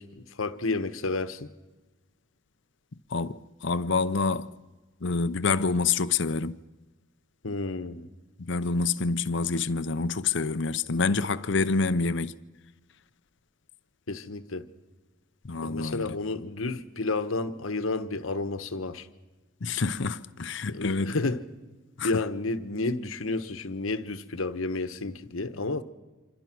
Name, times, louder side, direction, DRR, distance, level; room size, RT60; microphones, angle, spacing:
voice 1, 0.0-1.5 7.4-8.1 14.1-14.7 15.6-19.1 20.7-21.5 22.0-25.8, left 3 dB, 75° left, 1.2 m, -31 dB
voice 2, 3.1-4.5 5.0-6.6 8.4-12.3 15.4-16.2 19.6-21.2 22.0-22.1, left 4 dB, 55° left, 0.7 m, -27 dB
26.5 x 25.5 x 6.1 m
head